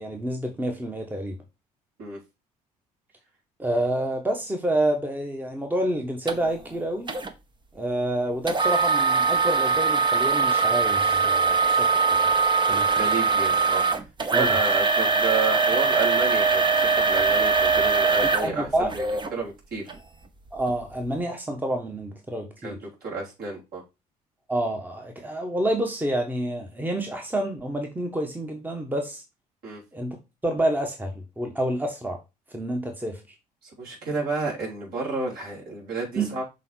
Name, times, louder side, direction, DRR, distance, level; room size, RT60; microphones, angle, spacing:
voice 1, 0.0-1.4 3.6-7.1 7.7-12.3 12.7-12.8 14.3-14.6 18.2-18.9 20.5-22.8 24.5-29.2 29.9-30.2 30.4-32.2 32.5-33.2 36.2-36.3, right 1 dB, 10° right, 3 dB, 1.2 m, -28 dB
sound 1, 6.3-6.4 7.1-7.3 8.5-19.3 19.9-20.0 20.6-20.7, right 4 dB, 25° right, 1.0 m, -22 dB
voice 2, 12.7-13.8 14.3-19.9 22.6-23.8 29.6-29.8 33.6-36.4, right 4 dB, 55° right, -3 dB, 3.6 m, -31 dB
6.3 x 3.6 x 4.4 m, 0.25 s
figure-of-eight pair, 55°, 19 cm